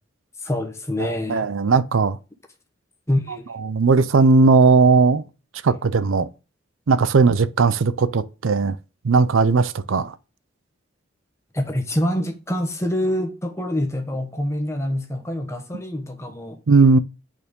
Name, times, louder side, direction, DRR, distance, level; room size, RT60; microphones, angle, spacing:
voice 1, 0.4-1.5 3.1-3.4 11.5-16.6, left 1 dB, 15° left, 1.3 m, -25 dB
voice 2, 1.0-2.2 3.6-5.2 5.6-6.3 6.9-8.8 9.0-10.2 16.7-17.0, right 4 dB, 80° right, 0.5 m, -17 dB
8.8 x 4.5 x 5.3 m
head